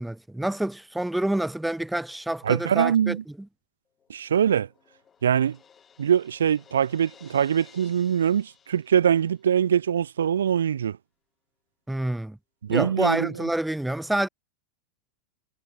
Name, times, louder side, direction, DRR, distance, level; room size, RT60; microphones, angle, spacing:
voice 1, 0.0-3.2 11.9-12.4 12.7-14.3, right 1 dB, 5° right, 0.4 m, -27 dB
voice 2, 2.4-3.2 4.1-4.7 5.2-5.6 6.0-11.0 12.6-13.3, right 8 dB, 65° right, 0.7 m, -23 dB
Crash cymbal, 4.0-9.7, left 7 dB, 20° left, 5.0 m, -56 dB
figure-of-eight pair, 90°, 0 cm